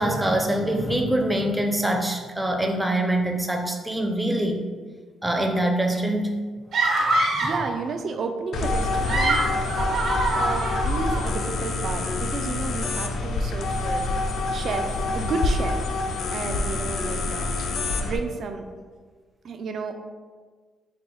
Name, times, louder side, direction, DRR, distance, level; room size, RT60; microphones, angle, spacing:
voice 1, 0.0-4.6 5.2-6.4 7.4-7.5, right 1 dB, 10° right, 2 dB, 0.5 m, -24 dB
sound 1, 6.7-7.7 8.9-11.3, right 2 dB, 75° right, 1.2 m, -24 dB
voice 2, 7.0-9.4 10.3-14.1 14.5-15.9 16.3-17.5 18.0-18.6 19.4-19.9, right 4 dB, 60° right, 6 dB, 0.4 m, -32 dB
sound 2, 8.5-18.2, left 2 dB, 65° left, 0.4 m, -26 dB
4.2 x 2.0 x 3.8 m, 1.5 s
cardioid pair, 90°, 0 cm